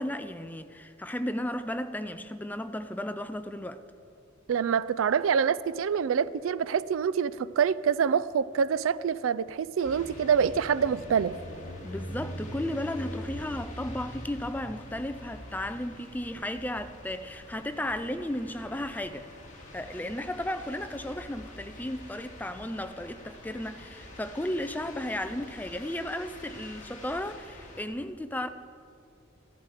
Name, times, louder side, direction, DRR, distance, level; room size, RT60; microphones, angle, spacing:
voice 1, 0.0-3.8 11.8-19.3 19.7-28.5, left 1 dB, 10° left, 0.4 m, -34 dB
voice 2, 4.5-11.4, right 7 dB, 85° right, 0.4 m, -26 dB
sound 1, 9.8-27.8, left 1 dB, 40° left, 2.0 m, -44 dB
14.5 x 11.5 x 4.9 m
head